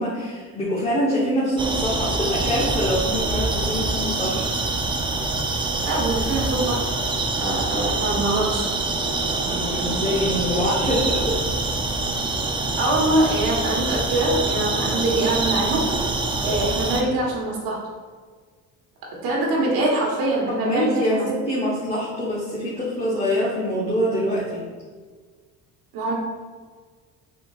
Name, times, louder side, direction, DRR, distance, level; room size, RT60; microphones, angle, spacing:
voice 1, 0.0-4.4 9.5-11.4 20.5-24.6, equal, 15° left, -7 dB, 1.0 m, -24 dB
sound 1, 1.6-17.0, right 2 dB, 15° right, 0.4 m, -25 dB
voice 2, 5.8-6.9 7.3-8.7 12.7-15.9 16.4-17.8 19.2-21.2 23.0-23.1 25.9-26.1, right 2 dB, 75° right, -3 dB, 1.4 m, -23 dB
4.4 x 3.8 x 2.4 m, 1.5 s
cardioid pair, 95°, 36 cm